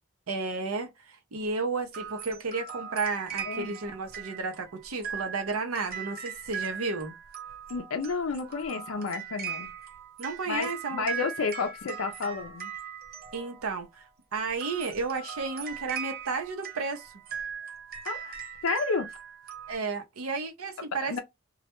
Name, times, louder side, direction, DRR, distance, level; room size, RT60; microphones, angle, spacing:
voice 1, 0.3-7.1 10.2-11.1 13.3-14.1 14.3-17.1 19.7-21.2, right 4 dB, 85° right, 0.7 m, -32 dB
sound 1, 1.9-13.9 14.5-19.8, right 7 dB, 45° right, 0.6 m, -39 dB
voice 2, 3.4-3.8 7.7-9.7 10.5-12.7 18.1-18.4 18.6-19.1 21.0-21.2, left 4 dB, 75° left, 0.4 m, -31 dB
2.2 x 2.1 x 2.9 m
head